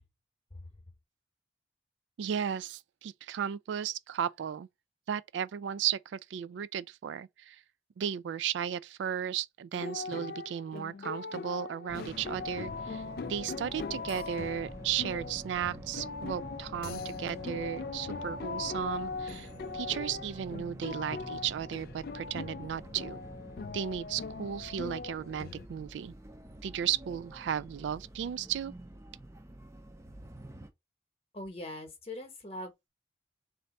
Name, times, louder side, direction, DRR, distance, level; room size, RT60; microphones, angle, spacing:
voice 1, 2.2-4.7 5.1-7.6 8.0-19.5 19.7-23.2 23.7-26.1 26.6-28.7, right 9 dB, 85° right, 0.3 m, -35 dB
sound 1, 9.7-25.7, left 4 dB, 55° left, 0.3 m, -40 dB
sound 2, 11.9-30.7, right 1 dB, 15° right, 0.4 m, -47 dB
voice 2, 31.3-32.9, left 1 dB, 35° left, 0.9 m, -42 dB
3.3 x 2.6 x 4.0 m
head